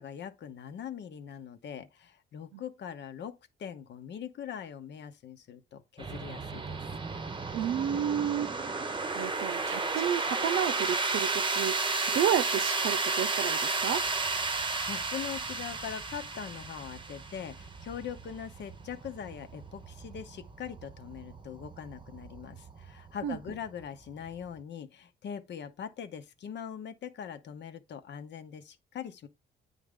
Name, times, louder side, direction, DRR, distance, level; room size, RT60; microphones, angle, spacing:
voice 1, 0.0-6.8 14.3-29.3, left 8 dB, 60° left, 0.9 m, -42 dB
sound 1, 6.0-24.6, right 3 dB, 25° right, 0.8 m, -33 dB
voice 2, 7.5-8.5 9.1-11.8 12.1-14.0 23.2-23.4, right 9 dB, 80° right, 0.7 m, -31 dB
9.1 x 3.7 x 3.7 m
cardioid pair, 90°, 20 cm